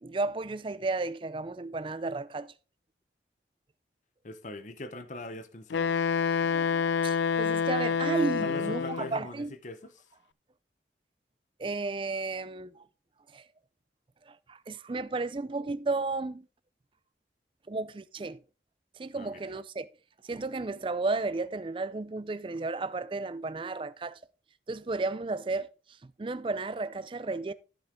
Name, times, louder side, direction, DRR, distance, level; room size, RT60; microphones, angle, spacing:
voice 1, 0.0-2.5 5.8-6.0 6.4-9.5 11.6-12.9 13.3-13.4 14.3-16.5 17.7-18.4 19.0-19.9 20.2-24.2 24.7-25.7 26.0-27.5, right 3 dB, 30° right, 0.4 m, -33 dB
voice 2, 4.2-5.9 8.4-9.9 19.1-19.5, left 2 dB, 40° left, 0.7 m, -41 dB
Wind instrument woodwind instrument, 5.7-9.2, left 6 dB, 75° left, 0.4 m, -28 dB
13.0 x 5.6 x 3.7 m
head